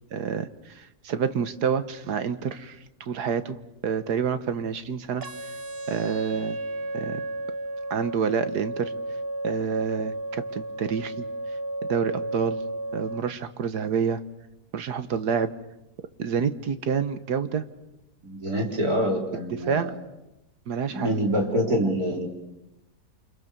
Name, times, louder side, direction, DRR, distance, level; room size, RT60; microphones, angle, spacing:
voice 1, 0.1-3.6 3.8-5.2 5.9-6.6 6.9-7.2 7.9-8.9 9.4-11.1 11.9-12.6 12.9-14.2 14.7-15.5 16.2-17.6 19.7-19.9 20.7-21.1, right 6 dB, 85° right, 11 dB, 1.8 m, -28 dB
sound 1, 5.2-13.2, right 1 dB, 40° right, 1.4 m, -33 dB
voice 2, 18.2-19.9 20.9-22.3, equal, 65° right, 1 dB, 4.4 m, -26 dB
29.0 x 26.0 x 6.9 m, 0.96 s
omnidirectional pair, 1.7 m